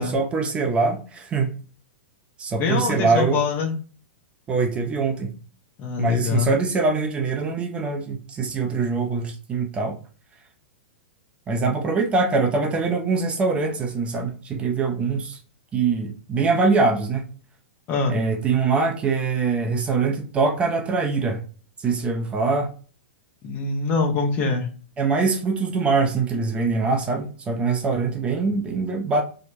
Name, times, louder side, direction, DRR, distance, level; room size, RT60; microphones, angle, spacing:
voice 1, 0.0-1.5 2.4-3.5 4.5-5.3 6.0-10.0 11.5-15.4 15.7-17.2 18.1-21.4 21.8-22.7 25.0-29.2, right 4 dB, 20° right, 0.4 m, -23 dB
voice 2, 2.6-3.7 5.8-6.5 17.9-18.2 23.4-24.7, left 4 dB, 30° left, 0.6 m, -24 dB
2.8 x 2.0 x 2.7 m
figure-of-eight pair, 100°, 6 cm